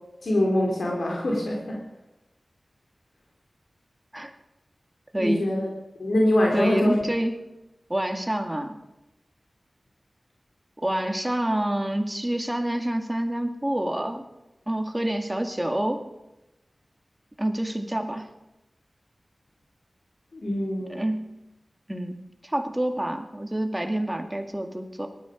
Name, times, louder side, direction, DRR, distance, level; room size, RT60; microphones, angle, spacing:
voice 1, 0.2-1.8 5.2-5.7 6.0-7.0 20.3-21.0, left 1 dB, 90° left, -1 dB, 3.8 m, -24 dB
voice 2, 5.1-5.5 6.5-7.3 7.9-8.8 10.8-14.2 14.7-16.0 17.4-18.3 20.9-21.2 21.9-25.1, right 1 dB, 15° right, 5 dB, 2.2 m, -27 dB
18.5 x 13.0 x 5.3 m, 0.96 s
wide cardioid pair, 60°, 0 cm